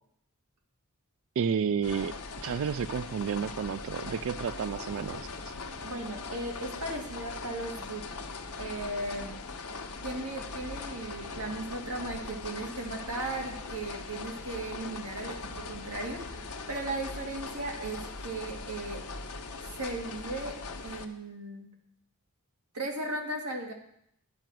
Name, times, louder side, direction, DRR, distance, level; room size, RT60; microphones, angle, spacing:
voice 1, 1.4-2.1 2.4-5.2, right 7 dB, 60° right, 15 dB, 0.3 m, -31 dB
sound 1, 1.8-21.1, left 3 dB, 75° left, 1.0 m, -40 dB
voice 2, 5.8-8.2 8.6-9.4 10.0-19.0 19.7-20.6 20.8-21.7 22.7-23.7, right 2 dB, 90° right, 1 dB, 2.1 m, -37 dB
10.5 x 5.6 x 7.6 m, 0.72 s
head